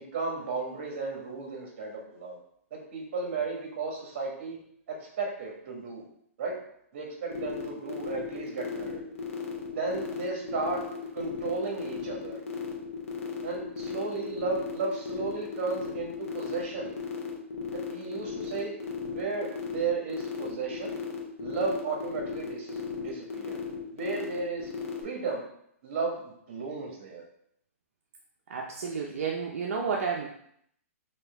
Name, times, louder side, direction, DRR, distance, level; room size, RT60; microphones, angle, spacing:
voice 1, 0.1-2.4 2.7-4.6 4.9-6.0 6.4-6.6 6.9-9.0 9.7-10.8 11.1-12.4 13.4-16.9 17.7-20.9 21.4-23.6 23.9-24.7 25.0-25.4 25.8-27.2, right 4 dB, 45° right, 0 dB, 1.4 m, -34 dB
sound 1, 7.3-25.0, left 5 dB, 70° left, 1.0 m, -36 dB
voice 2, 28.5-30.3, right 5 dB, 70° right, -1 dB, 0.6 m, -31 dB
4.3 x 2.8 x 3.4 m, 0.70 s
hypercardioid pair, 165°, 8 cm